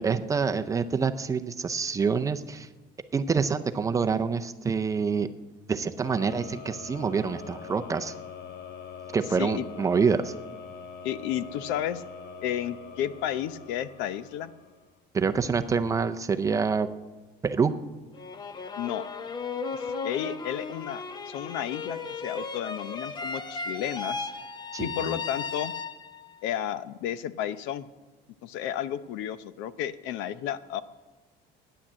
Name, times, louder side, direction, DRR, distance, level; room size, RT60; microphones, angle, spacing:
voice 1, 0.0-2.7 3.1-5.3 5.7-8.1 9.1-10.3 15.1-16.9 17.4-17.7 24.7-25.2, right 5 dB, 15° right, 8 dB, 0.5 m, -26 dB
sound 1, 6.0-15.0, left 5 dB, 55° left, 1.4 m, -43 dB
voice 2, 11.0-12.0 12.4-14.5 18.8-19.0 19.7-24.3 24.8-25.7 26.4-27.9 28.4-30.8, left 10 dB, 85° left, 14 dB, 0.8 m, -32 dB
sound 2, 18.1-26.3, left 4 dB, 25° left, 0.7 m, -36 dB
15.0 x 10.0 x 7.4 m, 1.3 s
cardioid pair, 165°, 19 cm